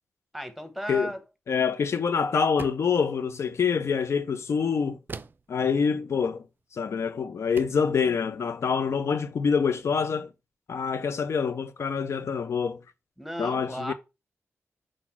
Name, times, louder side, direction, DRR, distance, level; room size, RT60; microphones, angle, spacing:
voice 1, 0.3-1.2 13.2-13.9, equal, ahead, 1.3 m, -35 dB
voice 2, 1.5-5.0 5.5-6.4 6.7-10.3 10.7-12.8 13.4-13.9, left 6 dB, 65° left, 0.5 m, -26 dB
sound 1, 2.6-3.0 5.1-5.5 6.9-7.0 7.6-7.9, right 4 dB, 40° right, 0.4 m, -41 dB
4.9 x 4.0 x 5.8 m
wide cardioid pair, 95°, 5 cm